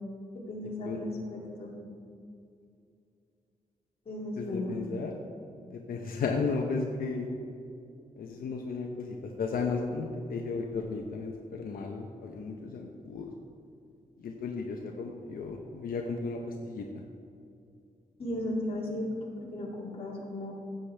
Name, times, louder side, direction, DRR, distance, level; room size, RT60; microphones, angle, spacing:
voice 1, 0.5-1.7 4.1-4.8 18.2-20.5, left 1 dB, 40° left, -4 dB, 2.6 m, -35 dB
voice 2, 4.4-5.1 5.7-7.3 8.2-13.3 14.2-16.9, left 4 dB, 80° left, 1 dB, 0.9 m, -34 dB
15.5 x 8.0 x 3.4 m, 2.5 s
wide cardioid pair, 180°, 15 cm